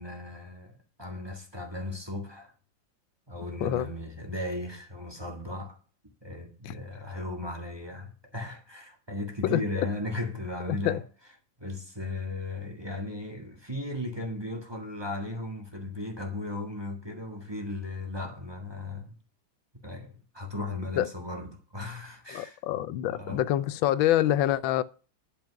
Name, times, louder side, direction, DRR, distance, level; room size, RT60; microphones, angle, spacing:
voice 1, 0.0-2.5 3.3-5.8 6.2-11.0 11.6-19.1 19.8-22.6 23.1-23.4, left 2 dB, 15° right, 1.5 m, -36 dB
voice 2, 9.4-9.9 10.7-11.0 21.0-21.1 22.3-24.8, left 12 dB, 85° left, 1.4 m, -26 dB
10.5 x 5.2 x 5.8 m
omnidirectional pair, 2.1 m